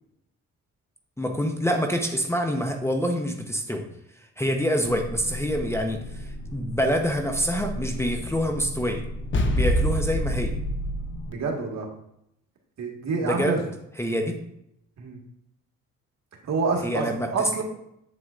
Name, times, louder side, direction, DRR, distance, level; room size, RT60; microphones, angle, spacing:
voice 1, 1.2-3.9 4.4-9.0 9.6-10.6 13.2-13.6 14.0-14.4 16.8-17.6, equal, 10° left, 4 dB, 0.9 m, -26 dB
sound 1, 4.8-11.3, equal, 35° left, 1.0 m, -29 dB
voice 2, 11.3-11.9 12.8-13.6 15.0-15.2 16.4-17.0 17.3-17.6, right 4 dB, 55° right, 0 dB, 1.8 m, -27 dB
7.9 x 7.6 x 2.5 m, 0.78 s
supercardioid pair, 70°, 32 cm